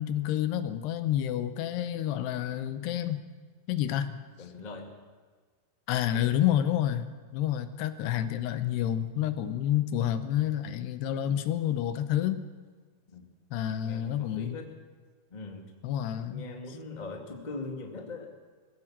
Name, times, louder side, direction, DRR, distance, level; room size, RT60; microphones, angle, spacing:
voice 1, 0.0-3.2 3.7-4.2 5.9-12.4 13.5-14.6 15.8-16.4, left 11 dB, 80° left, 11 dB, 3.0 m, -29 dB
voice 2, 4.4-5.0 6.0-6.4 13.1-13.3 13.8-14.8 15.3-15.7 16.2-18.4, left 3 dB, 20° left, 2 dB, 1.1 m, -41 dB
22.0 x 16.5 x 7.5 m, 1.5 s
omnidirectional pair, 4.8 m